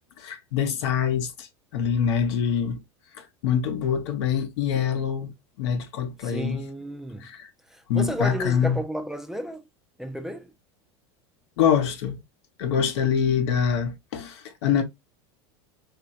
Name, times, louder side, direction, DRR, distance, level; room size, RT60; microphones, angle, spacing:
voice 1, 0.2-1.5 1.7-2.8 3.2-5.3 5.6-6.6 7.2-7.5 7.9-8.8 11.6-12.2 12.6-14.8, left 7 dB, 75° left, 0.7 m, -25 dB
voice 2, 6.2-7.3 7.7-9.6 10.0-10.5, equal, 5° right, 0.4 m, -32 dB
3.0 x 2.6 x 2.3 m
supercardioid pair, 110°, 14 cm